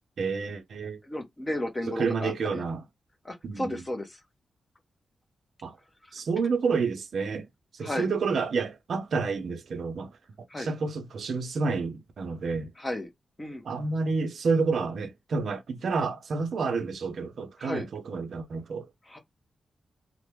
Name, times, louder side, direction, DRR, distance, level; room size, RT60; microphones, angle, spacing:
voice 1, 0.2-1.0 1.9-2.9 3.4-3.8 5.6-5.8 6.1-7.5 7.7-12.7 13.6-18.9, right 4 dB, 60° right, 0.5 m, -29 dB
voice 2, 1.0-2.6 3.2-4.1 7.8-8.1 10.5-10.7 12.8-13.1 13.4-13.6 17.6-17.9 19.1-19.2, left 1 dB, 15° left, 0.6 m, -33 dB
3.2 x 2.0 x 2.9 m
wide cardioid pair, 170°, 0 cm